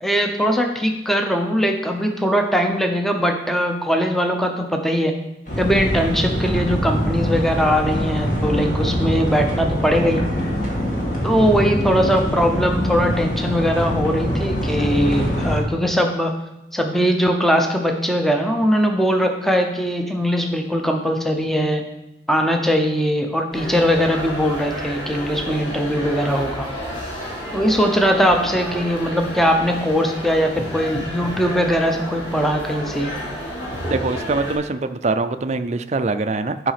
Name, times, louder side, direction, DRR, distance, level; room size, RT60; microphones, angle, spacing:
voice 1, 0.0-5.2 5.6-10.2 11.2-16.3 16.7-21.8 22.3-26.7 27.5-33.1, equal, ahead, 3 dB, 0.7 m, -20 dB
sound 1, 5.5-15.6, equal, 45° left, 2.0 m, -23 dB
sound 2, 23.5-34.6, equal, 30° left, 3.6 m, -31 dB
voice 2, 33.8-36.7, right 3 dB, 35° right, 10 dB, 0.4 m, -23 dB
10.0 x 5.0 x 5.8 m, 0.89 s
head